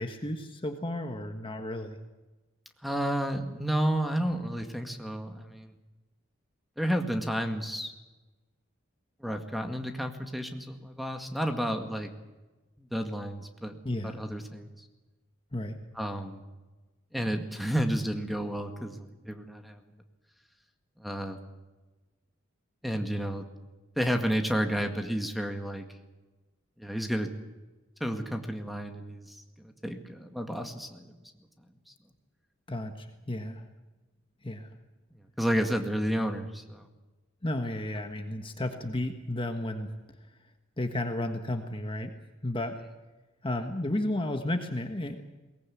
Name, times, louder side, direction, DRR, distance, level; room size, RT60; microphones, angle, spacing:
voice 1, 0.0-2.0 13.8-14.1 15.5-15.8 32.7-33.6 34.4-34.7 37.4-39.9 40.8-42.2 42.4-42.8 43.4-45.2, left 1 dB, 25° left, 6 dB, 1.4 m, -33 dB
voice 2, 2.8-5.7 6.8-7.9 9.2-12.1 12.8-13.8 14.0-14.8 16.0-16.4 17.1-19.8 21.0-21.4 22.8-23.4 24.0-25.8 26.8-27.3 28.0-31.2 35.4-36.9, equal, ahead, 5 dB, 2.0 m, -31 dB
22.5 x 19.0 x 8.5 m, 1.2 s
head